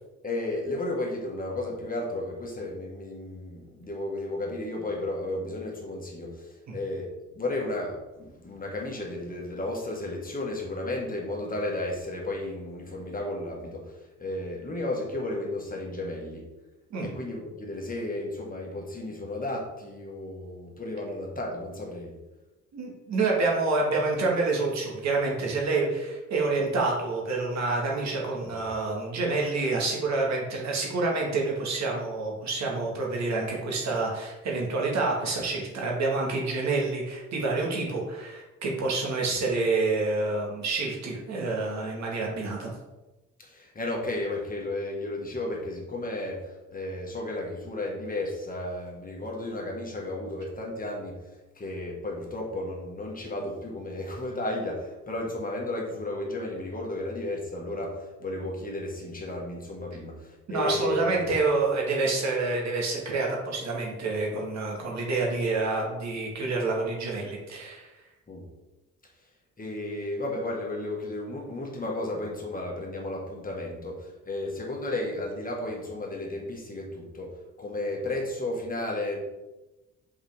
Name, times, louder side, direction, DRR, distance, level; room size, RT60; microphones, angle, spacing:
voice 1, 0.2-16.5 17.0-22.1 28.4-28.5 43.4-51.2 51.6-61.1 68.3-68.4 69.6-77.3 77.6-79.2, left 2 dB, 30° left, -2 dB, 1.6 m, -33 dB
voice 2, 22.7-42.7 60.5-67.9, right 3 dB, 65° right, -2 dB, 1.8 m, -28 dB
5.5 x 4.9 x 3.5 m, 1.1 s
cardioid pair, 90°, 30 cm